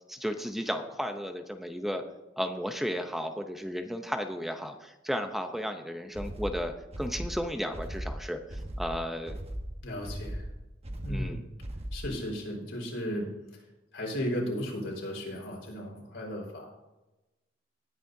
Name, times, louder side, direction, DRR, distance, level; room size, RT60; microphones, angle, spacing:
voice 1, 0.1-2.0 2.4-9.4 11.1-11.4, equal, ahead, 6 dB, 0.7 m, -34 dB
sound 1, 6.1-12.2, right 1 dB, 35° right, 1.2 m, -38 dB
voice 2, 9.8-10.5 11.0-11.4 11.9-13.6 13.9-16.7, equal, 70° left, -1 dB, 4.5 m, -35 dB
19.0 x 9.6 x 2.7 m, 1.0 s
head